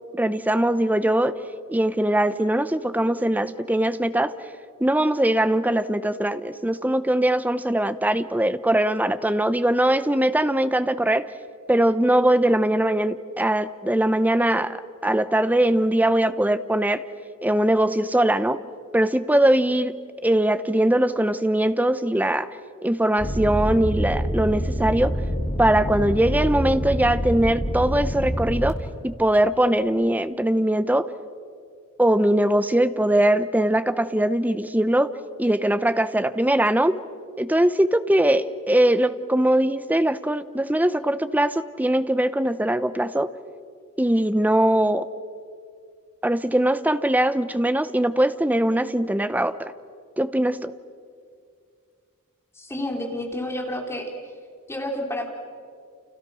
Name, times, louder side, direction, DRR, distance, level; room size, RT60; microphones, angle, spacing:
voice 1, 0.1-1.4 1.7-4.4 4.8-11.3 11.7-17.0 17.4-18.6 18.9-22.6 22.8-25.2 25.6-28.8 29.0-31.1 32.0-35.1 35.4-37.0 37.4-43.3 44.0-45.1 46.2-49.7 50.2-50.7, right 1 dB, 5° right, 13 dB, 0.8 m, -21 dB
sound 1, 23.2-28.7, equal, 35° left, 3.2 m, -26 dB
voice 2, 52.6-54.1 54.7-55.3, left 1 dB, 10° left, 1 dB, 3.5 m, -30 dB
30.0 x 29.0 x 6.3 m, 2.3 s
head